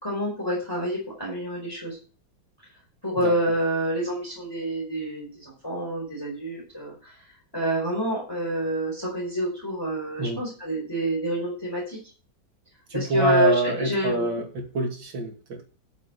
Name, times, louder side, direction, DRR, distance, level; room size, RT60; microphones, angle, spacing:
voice 1, 0.0-2.0 3.0-7.1 7.5-12.0 12.9-14.4, equal, 10° left, -4 dB, 4.7 m, -28 dB
voice 2, 12.9-15.6, right 2 dB, 70° right, 2 dB, 3.2 m, -26 dB
8.8 x 7.7 x 7.9 m, 0.39 s
omnidirectional pair, 2.1 m